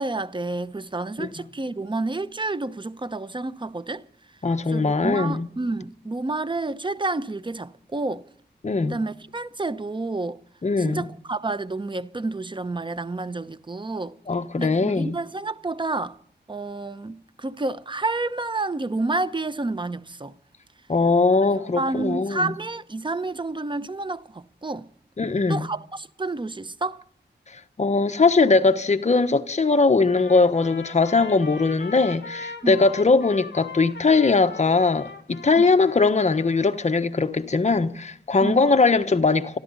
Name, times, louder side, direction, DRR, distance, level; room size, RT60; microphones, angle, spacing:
voice 1, 0.0-4.0 4.7-8.2 8.8-10.4 10.8-14.1 14.6-16.2 16.5-20.3 21.8-24.9 25.5-27.0 32.6-32.8 35.6-35.7 38.4-38.6, right 2 dB, 25° right, 0.7 m, -29 dB
voice 2, 4.4-5.5 8.6-9.0 10.6-11.1 14.3-15.2 20.9-22.5 25.2-25.7 27.8-39.6, left 3 dB, 40° left, 1.1 m, -20 dB
Trumpet, 30.1-37.0, left 4 dB, 70° left, 1.8 m, -40 dB
25.5 x 13.0 x 4.0 m
wide cardioid pair, 80°, 19 cm